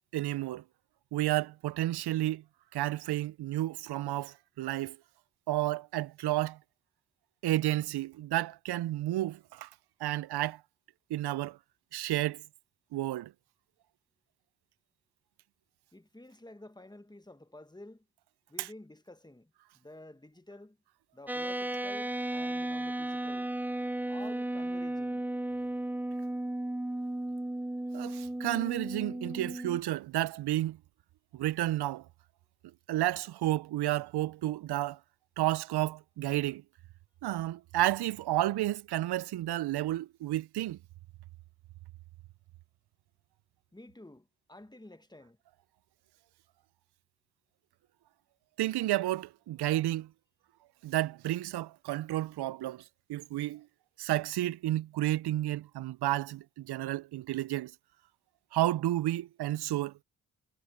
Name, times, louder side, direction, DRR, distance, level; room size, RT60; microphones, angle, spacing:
voice 1, 0.1-0.6 1.1-2.4 2.7-5.0 5.5-6.6 7.4-9.7 10.0-10.6 11.1-11.6 11.9-12.4 12.9-13.3 18.6-18.7 27.9-30.8 31.3-32.1 32.9-35.0 35.4-36.6 37.2-40.8 48.6-50.1 50.8-52.8 53.1-53.7 54.0-57.7 58.5-59.9, right 15 dB, 80° right, 0.6 m, -31 dB
voice 2, 15.9-18.0 18.5-20.8 21.1-23.5 24.1-25.3 43.7-45.4, left 1 dB, 10° left, 1.5 m, -51 dB
sound 1, 21.3-29.8, right 1 dB, 5° right, 0.5 m, -34 dB
supercardioid pair, 40°, 39 cm